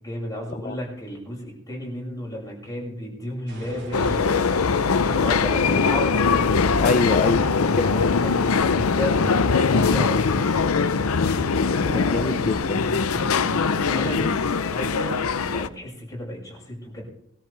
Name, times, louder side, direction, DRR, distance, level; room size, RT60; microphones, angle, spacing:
voice 1, 0.0-6.4 7.8-13.5 13.8-17.0, equal, 15° left, -2 dB, 6.4 m, -33 dB
sound 1, 3.5-8.2, right 2 dB, 55° right, 6.6 m, -45 dB
sound 2, 3.9-15.7, left 5 dB, 70° left, 0.7 m, -22 dB
voice 2, 5.5-5.9 6.8-7.9 12.1-12.8 14.2-14.4, left 3 dB, 35° left, 10 dB, 0.5 m, -25 dB
22.0 x 13.5 x 3.4 m, 0.72 s
head